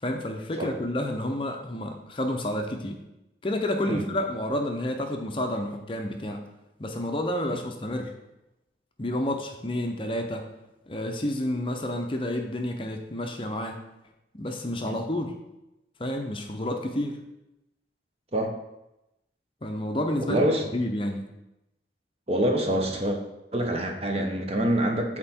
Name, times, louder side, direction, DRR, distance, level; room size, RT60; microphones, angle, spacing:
voice 1, 0.0-3.0 3.4-6.4 6.8-8.1 9.0-10.5 10.9-13.8 14.4-15.3 16.0-17.2 19.6-20.4 20.7-21.2, left 1 dB, 30° left, 4 dB, 0.6 m, -30 dB
voice 2, 20.3-20.6 22.3-23.2 23.5-25.2, right 1 dB, 35° right, 3 dB, 0.8 m, -25 dB
7.5 x 4.4 x 4.3 m, 0.92 s
head